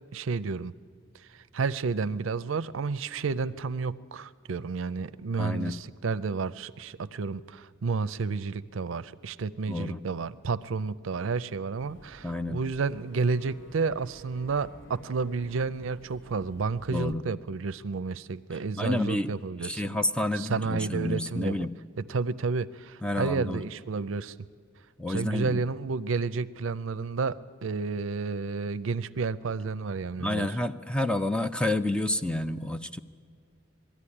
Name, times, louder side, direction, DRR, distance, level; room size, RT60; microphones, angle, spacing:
voice 1, 0.1-0.7 1.3-19.8 20.3-21.6 22.0-24.3 25.1-30.5, right 4 dB, 70° right, 15 dB, 0.5 m, -31 dB
voice 2, 5.4-5.7 9.7-10.0 12.2-12.6 16.9-17.3 18.7-19.3 19.6-21.7 23.0-23.6 25.0-25.6 30.2-33.0, left 1 dB, 5° left, 10 dB, 0.5 m, -29 dB
Boat Water vehicle / Engine, 11.8-17.1, right 2 dB, 70° left, 2.3 m, -51 dB
20.5 x 13.5 x 9.8 m, 2.1 s
head